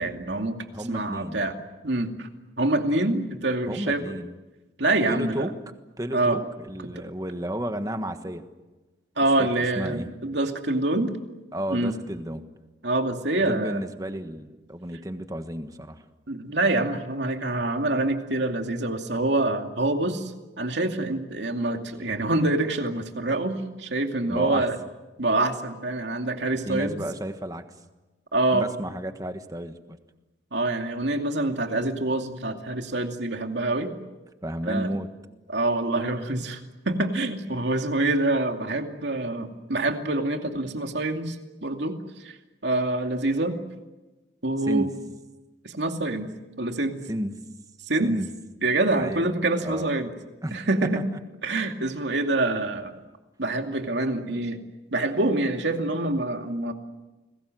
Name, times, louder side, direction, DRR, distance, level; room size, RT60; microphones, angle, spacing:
voice 1, 0.0-0.6 0.9-1.5 1.8-2.3 2.6-4.1 4.8-5.5 6.1-6.4 6.8-7.0 9.2-11.1 11.7-11.9 12.8-13.8 16.3-24.8 25.2-27.0 28.3-28.7 30.5-33.9 34.7-34.9 35.5-41.4 41.6-42.4 42.6-43.5 44.4-44.9 45.6-46.3 46.6-47.0 47.9-48.2 48.6-50.1 50.5-51.0 51.4-52.9 53.4-54.6 54.9-56.7, right 2 dB, 70° right, 4 dB, 2.5 m, -26 dB
voice 2, 0.7-1.4 3.7-4.3 5.1-5.5 6.0-8.4 9.4-9.5 9.8-10.1 11.5-12.4 13.4-16.0 24.3-24.7 26.7-27.6 28.5-30.0 34.4-35.1 44.7-44.9 47.1-47.3 48.0-48.3 49.0-49.3 49.6-49.9 50.4-50.6 50.9-51.2, equal, 20° right, 8 dB, 1.4 m, -32 dB
29.5 x 21.0 x 7.8 m, 1.1 s
head